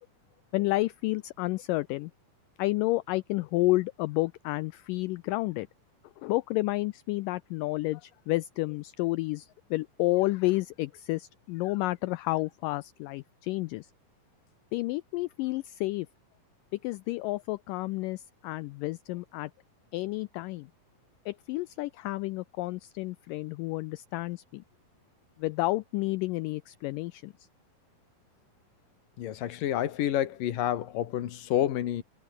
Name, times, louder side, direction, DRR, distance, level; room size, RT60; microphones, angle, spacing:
voice 1, 0.5-2.1 2.6-5.7 6.2-13.9 14.7-16.1 16.8-19.5 19.9-20.7 21.3-24.6 25.4-27.3, left 20 dB, 85° left, 1.9 m, -30 dB
voice 2, 29.2-32.0, left 12 dB, 65° left, 3.1 m, -29 dB
omnidirectional pair, 4.4 m